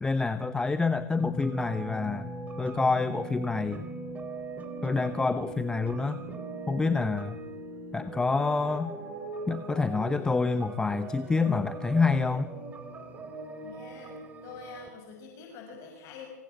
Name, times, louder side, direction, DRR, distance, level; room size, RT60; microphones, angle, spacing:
voice 1, 0.0-2.3 2.6-3.8 4.8-6.2 6.7-7.4 7.9-8.9 9.5-12.5, left 4 dB, 10° left, 12 dB, 0.8 m, -27 dB
sound 1, 1.2-14.9, right 3 dB, 15° right, 3.7 m, -40 dB
voice 2, 13.6-14.2 14.4-16.3, left 5 dB, 35° left, 2 dB, 6.5 m, -45 dB
26.5 x 24.0 x 7.8 m, 1.2 s
hypercardioid pair, 130°, 9 cm